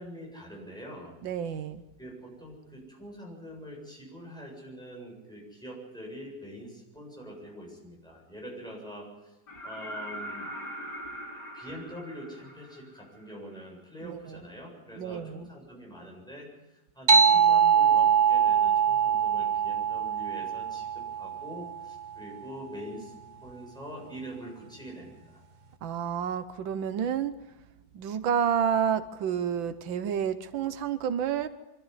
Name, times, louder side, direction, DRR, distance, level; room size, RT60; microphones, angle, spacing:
voice 1, 0.0-1.2 2.0-9.4 9.6-10.5 11.5-23.1 23.4-25.4, equal, ahead, -2 dB, 7.6 m, -44 dB
voice 2, 1.2-1.8 14.0-14.4 14.9-15.5 25.8-27.3 27.9-31.5, right 8 dB, 85° right, 11 dB, 1.7 m, -29 dB
sound 1, 9.5-13.3 15.2-15.3, right 1 dB, 60° left, 4.4 m, -41 dB
sound 2, 17.1-22.1, right 7 dB, 35° right, 0.8 m, -23 dB
25.0 x 13.0 x 9.9 m, 0.99 s
omnidirectional pair, 2.0 m